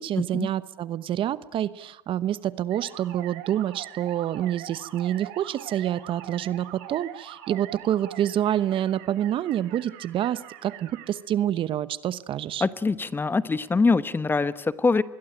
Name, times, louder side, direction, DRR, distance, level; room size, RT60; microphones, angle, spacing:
voice 1, 0.0-12.6, right 11 dB, 45° right, 17 dB, 1.0 m, -27 dB
sound 1, 2.7-11.1, right 12 dB, 75° right, 3.4 m, -43 dB
voice 2, 12.6-15.0, left 4 dB, 20° left, 15 dB, 1.1 m, -23 dB
25.5 x 21.5 x 9.0 m, 0.88 s
supercardioid pair, 95°, 12 cm